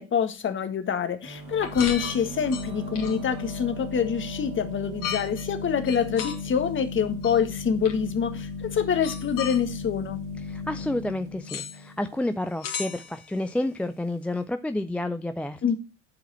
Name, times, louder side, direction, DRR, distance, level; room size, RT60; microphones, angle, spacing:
voice 1, 0.0-10.2 15.6-15.8, left 7 dB, 30° left, 1.6 m, -26 dB
sound 1, 1.2-12.7, left 3 dB, 60° right, 3.5 m, -36 dB
sound 2, 1.6-3.4 5.0-5.5 5.9-6.4 7.2-7.4 7.8-7.9 8.9-9.6 11.5-11.8 12.6-13.4, left 8 dB, 55° left, 2.6 m, -35 dB
voice 2, 10.4-15.7, left 1 dB, 5° left, 0.4 m, -30 dB
10.5 x 4.8 x 4.2 m
hypercardioid pair, 80°, 37 cm